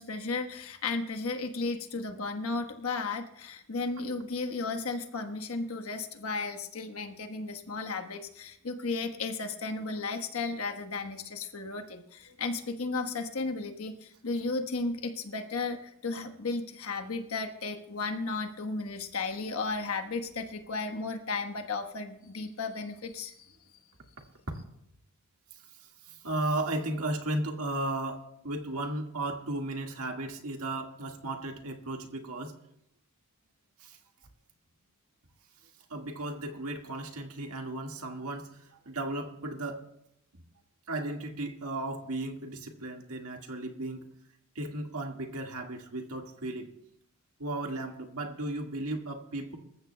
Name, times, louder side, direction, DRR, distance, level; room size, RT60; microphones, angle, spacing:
voice 1, 0.0-23.4, left 3 dB, 70° left, 6 dB, 1.3 m, -34 dB
voice 2, 26.1-32.5 33.8-34.0 35.9-38.6 38.9-39.8 40.9-44.0 44.6-46.7 47.4-49.6, right 2 dB, 75° right, 3 dB, 1.8 m, -35 dB
25.5 x 14.0 x 2.3 m, 0.77 s
head